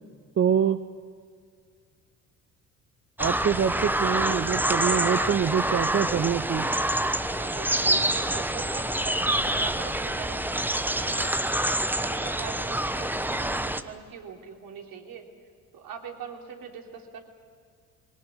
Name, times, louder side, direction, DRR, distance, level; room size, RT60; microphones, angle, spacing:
voice 1, 0.4-0.8 3.2-6.7, right 8 dB, 30° right, 12 dB, 0.8 m, -25 dB
sound 1, 3.2-13.8, right 1 dB, 5° right, 1.1 m, -26 dB
voice 2, 4.6-6.1 7.2-11.3 11.9-15.3 15.7-17.2, right 6 dB, 55° right, 2 dB, 3.4 m, -43 dB
22.5 x 18.5 x 9.2 m, 2.1 s
figure-of-eight pair, 50°, 42 cm